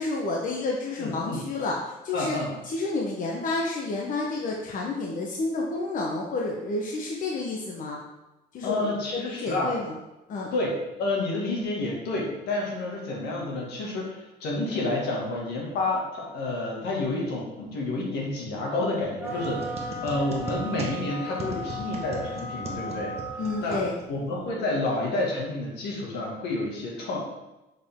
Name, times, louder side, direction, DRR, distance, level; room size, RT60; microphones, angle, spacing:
voice 1, 0.0-1.8 2.0-2.4 2.6-8.0 8.5-8.9 9.3-9.9 10.3-10.5 23.4-23.9, left 3 dB, 50° left, -2 dB, 1.1 m, -30 dB
voice 2, 1.0-1.4 2.1-2.5 8.6-9.8 10.5-23.2 23.6-23.8 24.1-27.2, left 2 dB, 80° left, -2 dB, 2.1 m, -29 dB
sound 1, 19.2-23.8, equal, 10° right, 1.3 m, -36 dB
sound 2, 19.2-24.4, right 2 dB, 40° right, 1.2 m, -39 dB
6.8 x 5.1 x 3.7 m, 1.0 s
cardioid pair, 110°, 17 cm